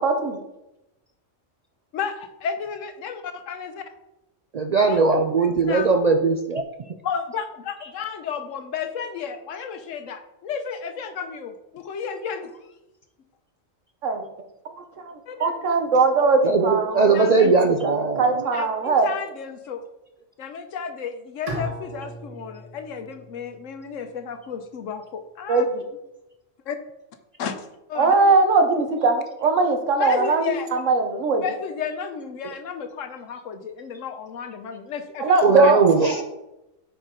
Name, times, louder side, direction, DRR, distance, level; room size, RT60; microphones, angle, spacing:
voice 1, 0.0-0.4 14.0-14.2 15.4-17.6 17.8-17.9 18.2-19.1 25.5-25.8 28.0-30.5 30.9-31.4 35.2-36.2, right 3 dB, 85° right, 6 dB, 1.3 m, -20 dB
voice 2, 1.9-3.8 4.8-5.0 5.4-5.9 7.0-12.6 15.3-15.6 17.1-17.5 18.5-19.8 20.4-25.6 26.7-26.8 27.4-28.2 30.0-30.7 31.4-35.7, left 6 dB, 85° left, 8 dB, 1.1 m, -32 dB
voice 3, 4.5-6.6 16.4-18.4 32.4-32.5 35.4-36.2, right 4 dB, 65° right, 6 dB, 0.4 m, -19 dB
Bowed string instrument, 21.5-24.5, equal, 30° right, 1.5 m, -37 dB
9.2 x 4.5 x 3.7 m, 0.92 s
omnidirectional pair, 1.3 m